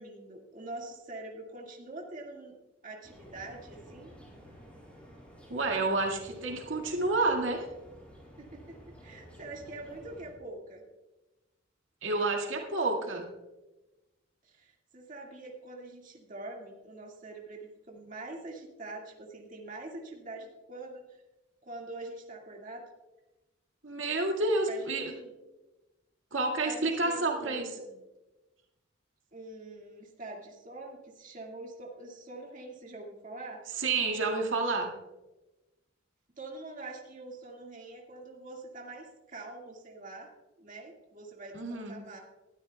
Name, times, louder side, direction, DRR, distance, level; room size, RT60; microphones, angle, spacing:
voice 1, 0.0-2.6 2.8-4.1 8.4-10.8 14.4-21.0 21.6-22.8 24.7-25.3 26.6-28.0 29.3-33.6 36.4-40.3 40.6-42.2, right 2 dB, 45° right, -1 dB, 2.0 m, -44 dB
sound 1, 3.0-10.3, right 1 dB, 5° left, 4.7 m, -50 dB
voice 2, 5.5-7.6 12.0-13.3 23.8-25.1 26.3-27.7 33.8-34.9 41.5-42.0, right 3 dB, 80° right, 1 dB, 2.0 m, -29 dB
20.0 x 13.0 x 2.3 m, 1.1 s
head